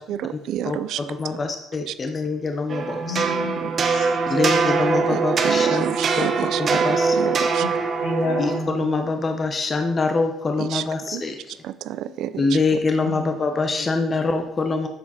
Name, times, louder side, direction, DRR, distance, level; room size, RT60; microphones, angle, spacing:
voice 1, 0.1-1.0 1.9-2.0 5.1-6.9 7.2-7.7 10.6-10.8 11.1-11.2 11.6-12.4 12.7-12.8, right 11 dB, 65° right, 15 dB, 0.5 m, -29 dB
voice 2, 1.2-3.2 4.3-6.3 6.6-7.2 8.4-11.6 12.4-14.9, left 3 dB, 25° left, 5 dB, 0.8 m, -24 dB
sound 1, 2.7-8.6, right 5 dB, 35° right, 0.9 m, -22 dB
voice 3, 2.9-5.2 7.6-7.7 8.0-9.1 13.0-13.3 13.8-13.9, left 2 dB, 70° left, 1 dB, 2.8 m, -31 dB
11.0 x 7.3 x 4.2 m, 0.80 s
cardioid pair, 165°, 0 cm